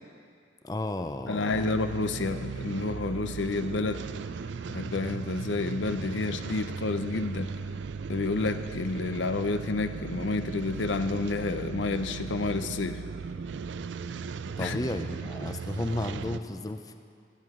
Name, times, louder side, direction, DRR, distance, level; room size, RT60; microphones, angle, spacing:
voice 1, 0.6-1.6 14.6-17.0, left 1 dB, 20° left, 7 dB, 0.4 m, -33 dB
voice 2, 1.3-4.1 4.7-7.5 8.1-13.0 14.6-14.8, left 3 dB, 90° left, 10 dB, 0.6 m, -30 dB
sound 1, 1.5-16.4, right 5 dB, 80° right, 0.4 m, -37 dB
18.5 x 12.0 x 3.7 m, 2.3 s
head